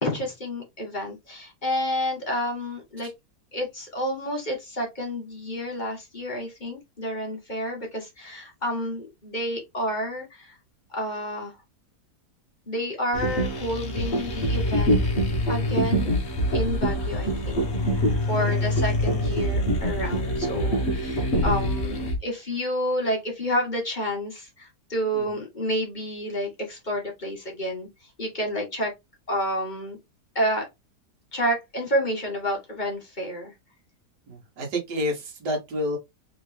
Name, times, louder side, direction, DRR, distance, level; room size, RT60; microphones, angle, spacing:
voice 1, 0.0-3.1 3.5-10.5 10.9-11.5 12.7-15.0 15.5-16.2 16.5-17.6 18.3-27.9 28.2-28.9 29.3-30.0 30.3-30.7 31.3-33.5, equal, 30° left, 1.6 m, -29 dB
sound 1, 13.1-22.2, equal, 45° left, 1.3 m, -25 dB
voice 2, 18.3-18.8 25.1-25.3 34.3-36.0, equal, 80° right, 2.0 m, -30 dB
4.0 x 3.5 x 3.2 m
omnidirectional pair, 1.8 m